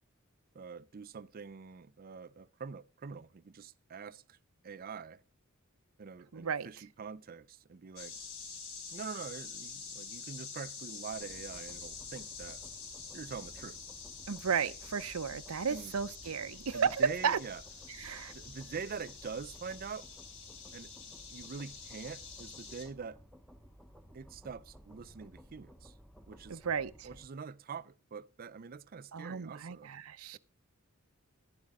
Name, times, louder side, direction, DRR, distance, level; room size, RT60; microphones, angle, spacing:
voice 1, 0.5-4.4 4.6-5.2 6.0-8.1 8.9-12.6 13.1-13.8 15.7-15.9 16.7-17.6 18.3-20.1 20.7-20.9 21.3-23.2 24.1-25.9 26.3-26.6 27.0-29.9, right 5 dB, 45° right, 0.5 m, -44 dB
voice 2, 6.3-6.7 14.3-17.4 18.0-18.3 26.5-27.1 29.1-30.4, right 6 dB, 85° right, 0.6 m, -33 dB
sound 1, 8.0-22.9, left 5 dB, 70° left, 4.1 m, -47 dB
sound 2, 11.1-27.3, equal, ahead, 0.9 m, -56 dB
11.5 x 10.5 x 3.6 m
head